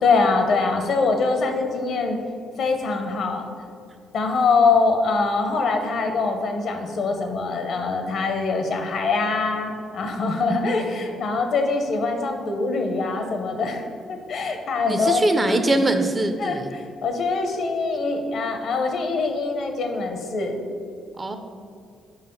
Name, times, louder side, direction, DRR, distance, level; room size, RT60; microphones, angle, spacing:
voice 1, 0.0-2.2 2.6-3.5 4.1-13.8 14.1-15.6 16.4-20.6, left 4 dB, 65° left, 4 dB, 0.8 m, -23 dB
voice 2, 14.8-16.7 21.2-21.4, right 2 dB, 25° right, 7 dB, 0.5 m, -22 dB
5.1 x 4.0 x 5.3 m, 2.4 s
cardioid pair, 90°, 0 cm